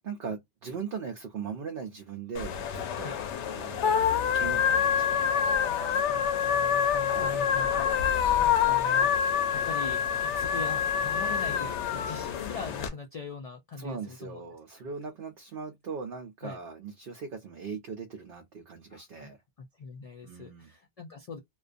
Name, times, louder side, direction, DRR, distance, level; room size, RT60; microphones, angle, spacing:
voice 1, 0.0-3.2 3.5-6.1 7.1-7.5 13.8-19.4 20.2-20.7, right 5 dB, 60° right, 0.7 m, -40 dB
sound 1, 2.4-12.9, left 8 dB, 85° left, 0.9 m, -26 dB
voice 2, 6.0-14.5 16.4-16.6 18.9-19.3 19.8-21.4, left 4 dB, 65° left, 0.3 m, -42 dB
2.4 x 2.2 x 2.5 m
omnidirectional pair, 1.2 m